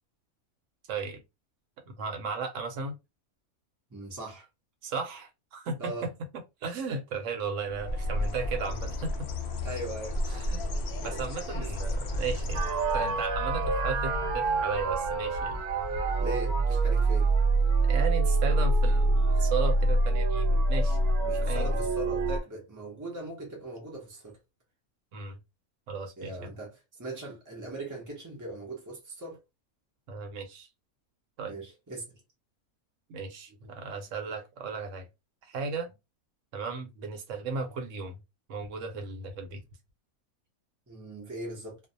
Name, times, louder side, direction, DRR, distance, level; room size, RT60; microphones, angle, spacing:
voice 1, 0.9-1.2 1.9-2.9 4.8-6.1 6.6-9.3 10.3-10.6 11.0-12.6 12.9-15.6 17.8-21.0 21.4-21.7 25.1-25.4 25.9-26.5 30.1-30.7 31.4-31.5 33.1-35.1 35.4-35.9 36.5-38.2 38.5-39.6, right 4 dB, 65° right, 0.9 m, -35 dB
voice 2, 3.9-4.5 5.8-6.1 9.6-10.2 10.6-11.3 11.6-11.7 16.2-17.4 21.2-24.4 26.2-29.4 31.5-32.1 40.9-41.8, right 2 dB, 30° right, 0.3 m, -40 dB
Bird, 7.7-13.2, left 1 dB, 75° left, 0.5 m, -32 dB
sound 1, 12.5-22.4, right 2 dB, 85° right, 1.1 m, -25 dB
2.5 x 2.0 x 2.6 m
omnidirectional pair, 1.5 m